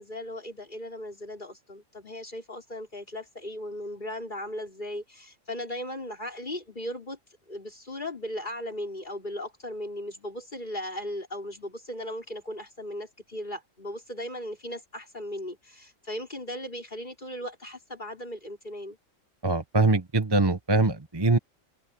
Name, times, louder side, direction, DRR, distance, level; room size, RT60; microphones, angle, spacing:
voice 1, 0.0-7.2 7.5-19.0, left 1 dB, 35° left, 5.1 m, -37 dB
voice 2, 19.4-21.4, right 3 dB, 20° right, 1.1 m, -23 dB
open air
omnidirectional pair, 1.4 m